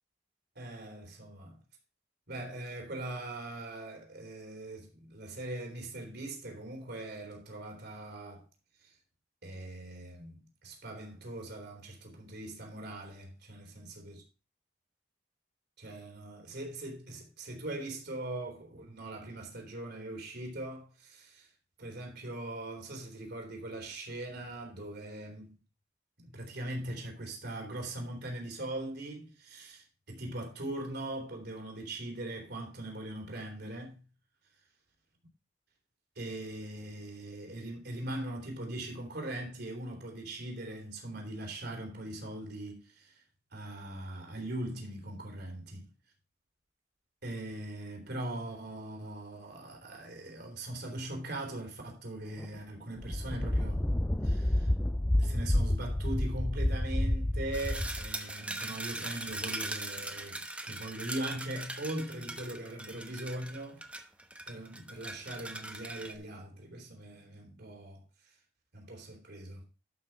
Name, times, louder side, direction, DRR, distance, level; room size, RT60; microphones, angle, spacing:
voice 1, 0.6-1.6 2.3-8.5 8.8-9.0 9.4-14.2 15.8-21.5 21.8-25.5 26.2-34.0 36.2-43.2 43.5-45.9 47.2-53.8 54.2-54.7 55.2-63.8 64.5-68.4 68.7-69.6, right 1 dB, 60° right, 3.6 m, -41 dB
sound 1, 52.4-52.5 53.0-58.1, left 1 dB, 10° left, 0.5 m, -29 dB
sound 2, 57.5-66.2, right 2 dB, 5° right, 1.0 m, -40 dB
12.0 x 5.9 x 4.4 m
head